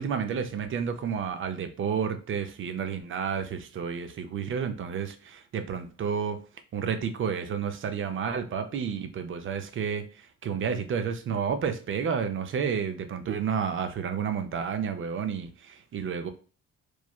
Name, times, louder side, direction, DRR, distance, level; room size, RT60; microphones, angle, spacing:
voice 1, 0.0-6.4 6.7-16.3, right 7 dB, 45° right, 8 dB, 0.5 m, -31 dB
3.0 x 2.1 x 2.2 m, 0.37 s
cardioid pair, 90°, 30 cm